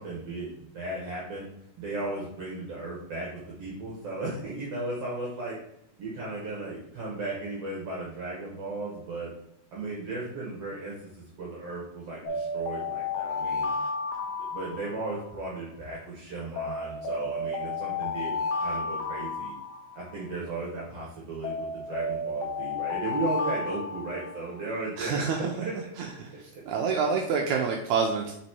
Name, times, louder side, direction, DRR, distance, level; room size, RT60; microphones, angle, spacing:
voice 1, 0.0-1.5 1.8-3.3 3.6-5.6 6.0-9.3 9.7-13.7 14.5-18.3 18.6-19.5 19.9-25.7 26.5-26.6, right 2 dB, 60° right, -5 dB, 2.1 m, -35 dB
sound 1, 12.2-15.4 16.6-20.3 21.4-24.7, left 3 dB, 80° left, 1.1 m, -32 dB
voice 2, 25.0-25.5 26.2-28.3, right 5 dB, 80° right, 1 dB, 1.9 m, -27 dB
5.4 x 4.1 x 4.4 m, 0.76 s
omnidirectional pair, 3.6 m